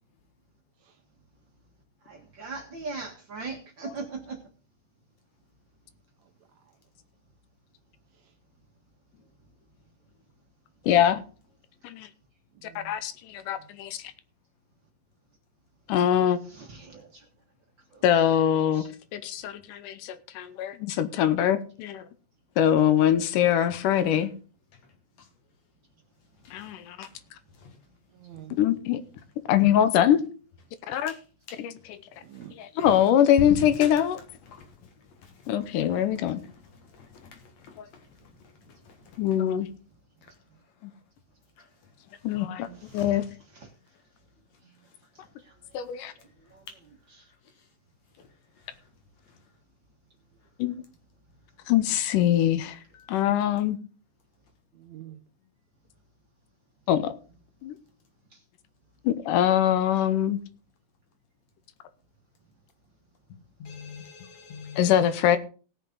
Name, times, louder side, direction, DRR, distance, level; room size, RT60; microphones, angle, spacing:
voice 1, 2.0-4.4 16.4-17.3 17.9-18.1 18.7-18.9 42.6-43.2 43.5-43.7 45.1-45.9 46.2-47.3 51.9-52.0 52.4-52.5 58.3-58.4, right 4 dB, 45° right, 1.9 m, -41 dB
voice 2, 10.9-11.2 11.8-12.1 12.9-14.0 15.9-16.4 18.0-18.8 19.1-22.0 22.6-24.3 26.5-27.1 28.6-29.0 29.5-30.2 30.9-31.1 31.6-32.0 32.6-34.2 35.5-36.4 37.8-37.9 39.2-39.7 42.2-42.7 42.9-43.3 45.7-46.1 50.6-50.7 51.7-52.8 53.1-53.8 56.9-57.1 57.6-57.8 59.1-60.4 64.8-65.4, left 10 dB, 80° left, 2.3 m, -23 dB
voice 3, 12.6-12.9 13.6-13.7 28.1-28.6 32.2-32.5 42.5-42.8 54.7-55.2, right 13 dB, 70° right, 1.8 m, -46 dB
voice 4, 37.0-37.4 42.3-42.4 42.9-43.1 53.0-53.1 63.6-64.9, left 5 dB, 60° left, 2.5 m, -39 dB
18.0 x 6.6 x 3.9 m
omnidirectional pair, 3.8 m